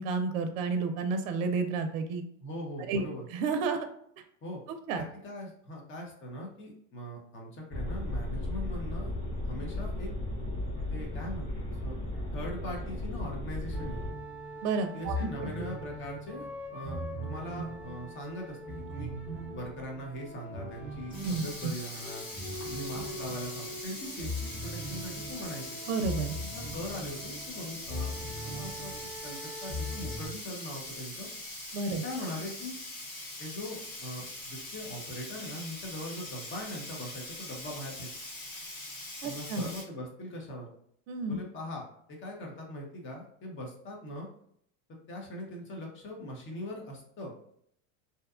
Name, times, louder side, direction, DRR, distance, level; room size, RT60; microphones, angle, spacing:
voice 1, 0.0-2.2 2.9-3.0 3.3-3.9 4.9-5.0 14.6-15.3 21.2-21.4 25.9-26.4 31.7-32.0 39.2-39.7 41.1-41.4, right 4 dB, 70° right, 7 dB, 0.5 m, -30 dB
voice 2, 2.4-3.3 4.4-4.6 5.0-9.1 9.4-10.1 10.9-11.5 11.8-12.0 12.3-14.0 14.9-19.1 19.5-22.2 22.7-25.8 26.3-28.9 29.2-31.3 31.9-32.7 33.4-38.1 39.2-40.7 41.3-44.3 45.1-47.3, equal, 30° left, 0 dB, 0.7 m, -41 dB
sound 1, 7.7-14.1, left 1 dB, 50° left, 1.3 m, -35 dB
sound 2, 13.7-30.3, equal, 5° right, 0.3 m, -40 dB
Sink (filling or washing), 21.1-39.8, left 2 dB, 80° left, 1.4 m, -42 dB
2.7 x 2.2 x 2.3 m, 0.68 s
supercardioid pair, 120°, 41 cm